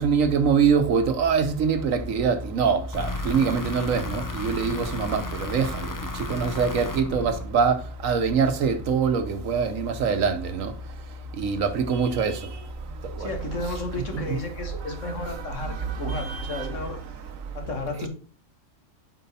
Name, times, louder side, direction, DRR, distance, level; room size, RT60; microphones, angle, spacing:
voice 1, 0.0-10.7 11.4-12.5 13.2-14.4 14.8-16.8, right 6 dB, 90° right, 1.4 m, -25 dB
sound 1, 2.9-7.9, left 2 dB, 20° left, 0.5 m, -34 dB
voice 2, 13.2-17.0 17.5-18.1, left 2 dB, 70° left, 1.9 m, -33 dB
7.7 x 4.7 x 4.2 m
omnidirectional pair, 1.3 m